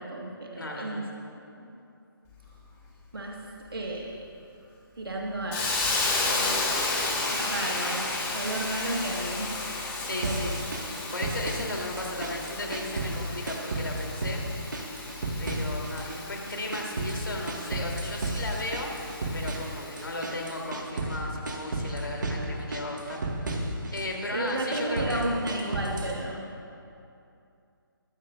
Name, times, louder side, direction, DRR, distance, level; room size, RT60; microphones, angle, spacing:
voice 1, 0.0-1.8 3.1-4.3 4.9-6.9 7.3-9.7 10.1-10.6 24.3-26.6, right 1 dB, 70° right, -1 dB, 1.7 m, -33 dB
voice 2, 0.5-1.0 9.9-10.6 11.1-14.4 15.4-18.9 19.3-23.2 23.9-25.3, left 2 dB, 65° left, 0 dB, 3.4 m, -35 dB
Hiss, 5.5-20.3, left 3 dB, 15° left, 2.9 m, -33 dB
sound 1, 10.2-11.7 12.0-13.2 13.5-14.4 14.7-16.2 16.5-21.2 21.5-22.4 22.7-24.1 24.5-26.2, right 2 dB, 55° right, 1.8 m, -33 dB
22.0 x 14.0 x 2.6 m, 2.6 s
figure-of-eight pair, 145°, 12 cm